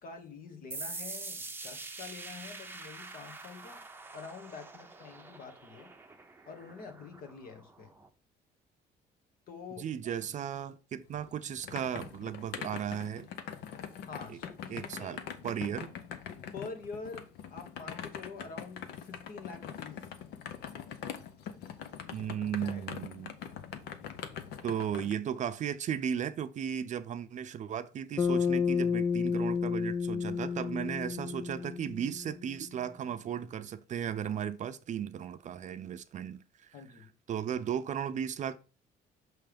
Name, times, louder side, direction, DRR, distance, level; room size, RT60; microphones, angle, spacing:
voice 1, 0.0-3.9 4.1-5.9 6.5-7.9 9.5-10.2 14.1-15.2 16.5-20.0 22.4-22.9 36.7-37.1, left 4 dB, 55° left, 1.4 m, -46 dB
sound 1, 0.7-8.1, right 3 dB, 10° right, 0.7 m, -45 dB
voice 2, 9.8-13.3 14.3-14.4 14.7-15.9 22.1-23.3 24.6-36.7 37.3-38.6, right 8 dB, 45° right, 0.5 m, -35 dB
sound 2, 11.1-25.1, left 8 dB, 80° left, 0.8 m, -43 dB
Bass guitar, 28.2-32.6, left 6 dB, 25° left, 0.4 m, -31 dB
6.3 x 3.4 x 5.1 m
cardioid pair, 110°, 17 cm